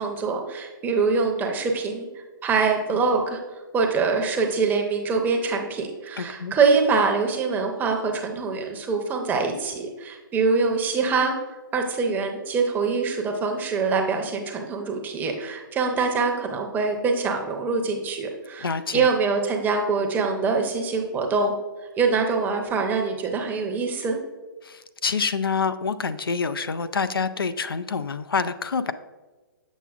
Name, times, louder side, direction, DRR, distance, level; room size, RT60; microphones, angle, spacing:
voice 1, 0.0-3.4 3.7-11.3 11.7-18.7 18.9-21.5 22.0-24.2, right 4 dB, 15° right, 3 dB, 0.7 m, -24 dB
voice 2, 6.2-6.5 18.6-19.1 24.6-28.9, left 5 dB, 90° left, 12 dB, 0.4 m, -27 dB
7.2 x 5.8 x 2.4 m, 1.2 s
hypercardioid pair, 130°, 12 cm